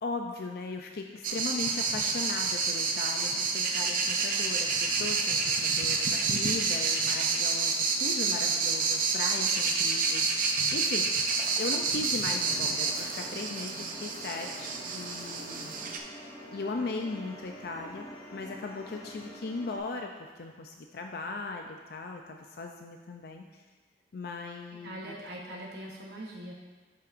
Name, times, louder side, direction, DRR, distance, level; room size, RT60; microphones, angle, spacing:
voice 1, 0.0-16.1 16.5-23.6 24.1-25.1, left 3 dB, 60° left, 3 dB, 0.5 m, -38 dB
sound 1, 1.2-16.0, right 4 dB, 50° right, 0.6 m, -29 dB
sound 2, 12.3-19.8, equal, 40° left, 2.3 m, -47 dB
voice 2, 24.8-26.5, right 1 dB, 65° right, -3 dB, 1.1 m, -41 dB
11.0 x 5.7 x 2.6 m, 1.3 s
head